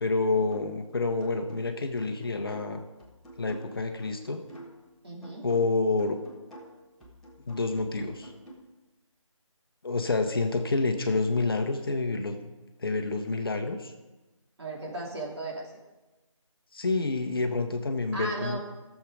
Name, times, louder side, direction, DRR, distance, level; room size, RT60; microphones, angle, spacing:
voice 1, 0.0-2.8 3.4-4.4 5.4-6.2 7.4-8.3 9.8-12.4 12.8-13.9 16.7-18.6, left 3 dB, 45° left, 5 dB, 1.1 m, -28 dB
sound 1, 0.5-0.8 1.2-4.9 5.2-8.5, right 1 dB, ahead, 1.3 m, -49 dB
voice 2, 5.0-5.5 14.6-15.7 18.1-18.6, right 2 dB, 50° right, -2 dB, 3.0 m, -35 dB
14.5 x 7.4 x 5.1 m, 1.1 s
figure-of-eight pair, 170°, 17 cm